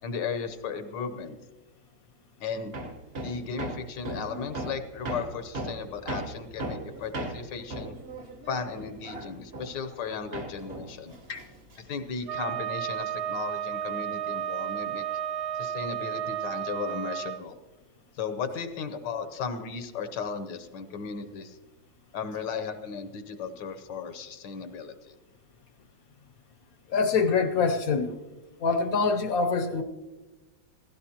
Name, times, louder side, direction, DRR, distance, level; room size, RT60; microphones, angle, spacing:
voice 1, 0.0-1.4 2.4-2.7 3.2-8.0 8.5-11.1 11.8-15.0 15.5-17.6 18.2-21.6 22.1-25.2, left 5 dB, 80° left, 9 dB, 1.5 m, -35 dB
Hammer, 2.7-10.1 10.3-12.1, right 2 dB, 40° right, 1.2 m, -37 dB
Wind instrument woodwind instrument, 12.3-17.4, right 10 dB, 70° right, 1.1 m, -32 dB
voice 2, 26.9-28.2 28.6-29.8, left 4 dB, 60° left, 7 dB, 1.1 m, -25 dB
16.0 x 16.0 x 2.9 m, 1.3 s
omnidirectional pair, 1.9 m